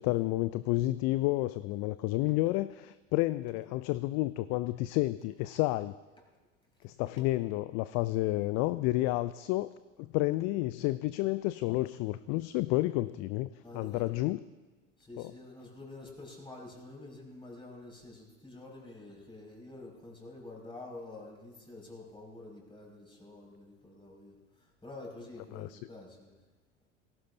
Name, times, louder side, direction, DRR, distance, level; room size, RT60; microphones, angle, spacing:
voice 1, 0.0-5.9 6.8-9.7 10.0-14.4 15.2-15.3 25.5-25.8, left 18 dB, 45° left, 16 dB, 0.4 m, -30 dB
voice 2, 13.6-14.0 15.0-24.4 24.8-26.3, left 2 dB, 15° left, -1 dB, 5.7 m, -48 dB
18.0 x 16.0 x 2.7 m, 1.3 s
hypercardioid pair, 80°, 40 cm